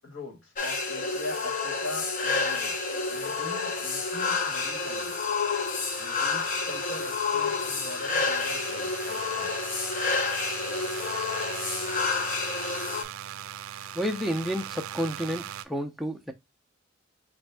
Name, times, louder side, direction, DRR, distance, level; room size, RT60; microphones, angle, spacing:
voice 1, 0.0-2.8 3.1-5.2 6.0-9.6, left 2 dB, 90° left, 1.7 m, -41 dB
sound 1, 0.6-13.0, left 4 dB, 45° left, 0.7 m, -29 dB
sound 2, 2.0-15.7, right 10 dB, 90° right, 0.4 m, -42 dB
voice 2, 13.9-16.3, equal, ahead, 0.5 m, -30 dB
4.1 x 2.6 x 3.3 m
head